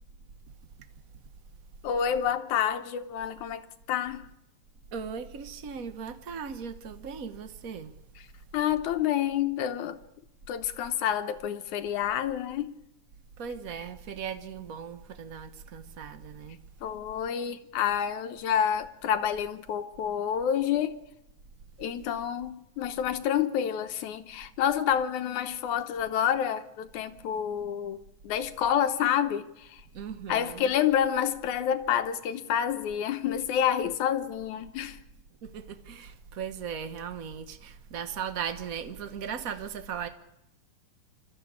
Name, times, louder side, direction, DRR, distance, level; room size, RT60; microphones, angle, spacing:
voice 1, 1.8-4.3 8.5-10.0 10.5-12.7 16.8-21.0 21.8-29.8 30.3-35.0, left 9 dB, 75° left, 2.4 m, -28 dB
voice 2, 4.9-7.9 13.4-16.6 29.9-30.7 35.4-40.1, right 7 dB, 85° right, 0.7 m, -38 dB
27.0 x 13.5 x 8.7 m
omnidirectional pair, 3.5 m